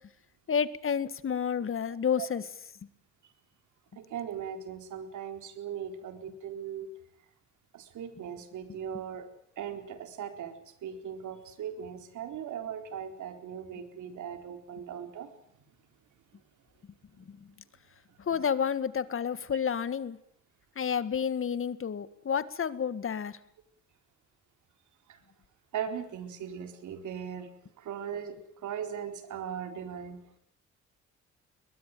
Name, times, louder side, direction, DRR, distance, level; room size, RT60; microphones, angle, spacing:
voice 1, 0.5-2.4 17.3-17.4 18.3-20.2 20.8-23.4, left 7 dB, 45° left, 15 dB, 1.9 m, -30 dB
voice 2, 1.9-2.3 3.9-6.9 7.7-9.3 9.6-15.3 25.1-25.2 25.7-27.5 27.8-30.2, right 8 dB, 75° right, 8 dB, 4.3 m, -39 dB
21.5 x 21.5 x 9.4 m, 0.67 s
cardioid pair, 90°, 30 cm